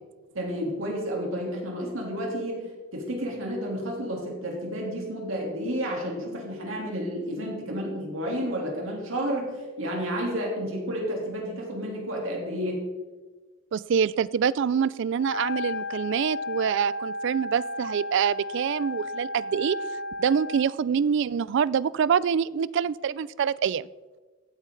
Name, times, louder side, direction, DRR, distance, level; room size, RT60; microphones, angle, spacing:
voice 1, 0.3-9.5 9.8-12.8, equal, 85° right, -2 dB, 3.3 m, -31 dB
voice 2, 13.7-19.8 20.2-23.9, right 7 dB, 65° right, 20 dB, 0.3 m, -25 dB
Wind instrument woodwind instrument, 15.1-20.8, left 2 dB, 55° left, 0.6 m, -34 dB
15.5 x 8.1 x 3.9 m, 1.3 s
head